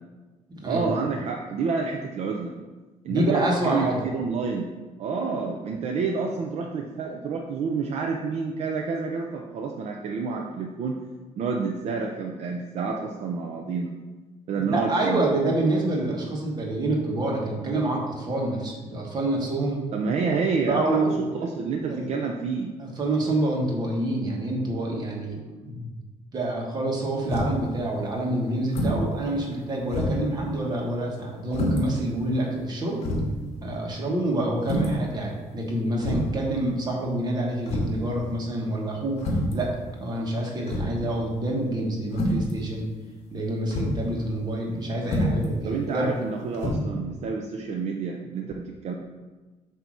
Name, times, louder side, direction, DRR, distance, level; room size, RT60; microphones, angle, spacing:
voice 1, 0.6-2.5 3.0-3.9 4.1-4.7 5.0-11.0 11.4-13.9 14.5-15.2 19.9-22.7 45.6-48.9, right 5 dB, 55° right, 1 dB, 0.5 m, -29 dB
voice 2, 3.1-4.0 14.6-19.8 20.7-21.2 21.9-22.1 22.8-25.9 26.3-33.1 33.6-39.2 39.5-39.7 40.0-42.9 43.3-46.1, right 1 dB, 30° right, -1 dB, 1.2 m, -27 dB
sound 1, 27.3-27.7 28.7-29.1 29.4-29.5 29.9-30.3 31.5-31.8 32.6-32.7 33.0-33.3 34.6-35.0 36.0-36.4 37.7-38.0 39.2-39.6 40.7-41.0 42.1-42.5 43.7-44.0 45.0-45.5 46.5-46.7, left 1 dB, 50° left, 1.5 m, -26 dB
7.9 x 2.8 x 6.1 m, 1.2 s
cardioid pair, 180°, 13 cm